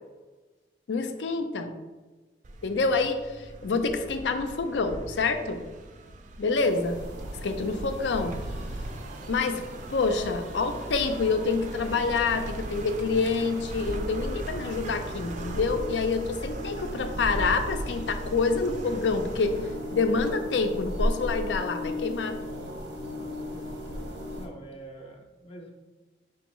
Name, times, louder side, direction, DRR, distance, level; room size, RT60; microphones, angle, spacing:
voice 1, 0.9-1.8 2.6-5.6 6.4-7.0 7.4-8.4 9.3-9.6 9.9-19.6 19.9-22.4, left 4 dB, 90° left, 7 dB, 0.5 m, -27 dB
sound 1, 2.4-20.6, right 1 dB, 45° right, 0.4 m, -39 dB
sound 2, 6.5-24.5, equal, 85° right, 0.9 m, -38 dB
voice 2, 23.2-23.8 24.4-25.7, right 1 dB, 30° left, 1 dB, 0.4 m, -46 dB
5.0 x 3.5 x 3.0 m, 1.3 s
head